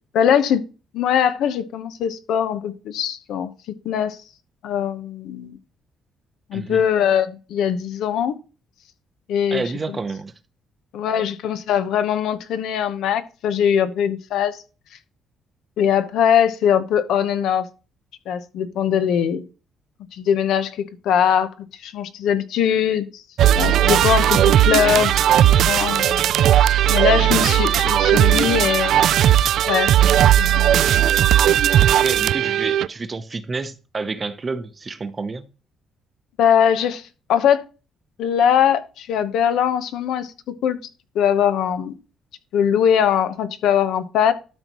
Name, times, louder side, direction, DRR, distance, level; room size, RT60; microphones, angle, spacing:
voice 1, 0.1-0.6 0.9-3.5 3.8-4.2 4.6-5.6 6.5-8.3 9.3-10.0 10.9-14.6 15.8-17.7 18.3-19.4 20.1-20.8 21.0-21.5 21.8-23.2 23.5-26.3 26.9-28.9 29.7-29.9 30.4-30.8 36.4-37.0 37.3-37.6 38.2-40.3 40.6-40.8 41.1-41.9 42.5-44.3, left 8 dB, 80° left, 1.0 m, -21 dB
voice 2, 6.5-6.8 9.5-10.3 23.8-24.0 31.9-35.5, right 4 dB, 25° right, 0.8 m, -29 dB
sound 1, 23.4-32.9, right 11 dB, 70° right, 0.3 m, -17 dB
12.5 x 5.5 x 3.1 m
cardioid pair, 130°, 0 cm